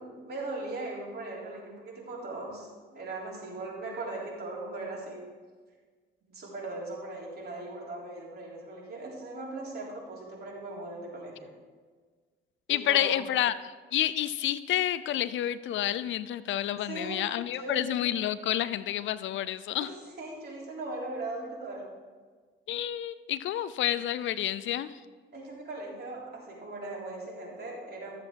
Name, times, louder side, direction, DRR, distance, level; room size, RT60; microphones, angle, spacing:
voice 1, 0.0-5.3 6.3-11.5 12.7-13.2 16.8-17.9 19.8-21.9 25.3-28.1, right 2 dB, 55° right, -3 dB, 3.6 m, -39 dB
voice 2, 12.7-19.9 22.7-25.0, left 12 dB, 75° left, 15 dB, 0.5 m, -29 dB
13.5 x 7.6 x 4.6 m, 1.5 s
cardioid pair, 90°, 20 cm